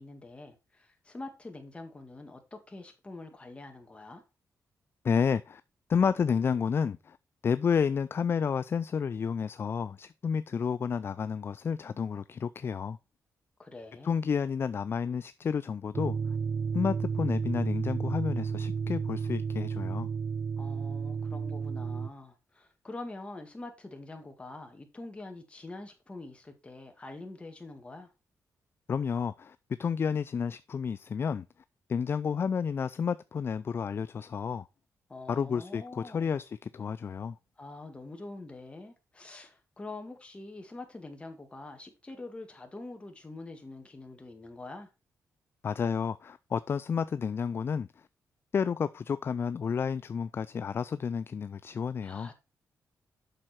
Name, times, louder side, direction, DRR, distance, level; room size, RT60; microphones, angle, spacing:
voice 1, 0.0-4.2 13.6-14.2 20.6-28.1 35.1-36.4 37.6-44.9 52.0-52.3, left 2 dB, 20° left, 2.0 m, -45 dB
voice 2, 5.0-5.6 5.9-7.2 7.4-13.0 14.0-16.2 16.7-20.1 28.9-31.5 31.9-34.7 35.3-37.4 45.6-47.9 48.5-52.3, left 6 dB, 40° left, 0.3 m, -30 dB
sound 1, 15.9-22.1, right 6 dB, 45° right, 0.5 m, -32 dB
7.6 x 6.3 x 4.3 m
cardioid pair, 115°, 6 cm